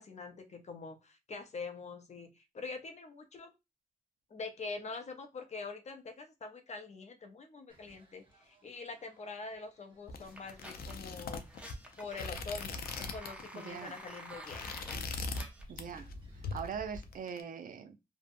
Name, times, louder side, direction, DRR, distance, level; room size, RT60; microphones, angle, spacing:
voice 1, 0.0-3.5 4.3-11.6 12.0-14.6, left 4 dB, 50° left, 0.6 m, -44 dB
newjersey AC boardwalk mono, 7.7-17.2, left 1 dB, 30° right, 0.9 m, -56 dB
sound 1, 10.1-13.5 13.7-14.0 14.3-15.5 15.8-16.1 16.4-17.4, left 4 dB, 90° left, 0.4 m, -40 dB
sound 2, 10.2-15.6, right 1 dB, 10° right, 0.6 m, -50 dB
voice 2, 13.5-13.9 15.7-16.1 16.5-18.0, right 7 dB, 65° right, 0.4 m, -41 dB
2.6 x 2.1 x 2.5 m
cardioid pair, 90°, 15 cm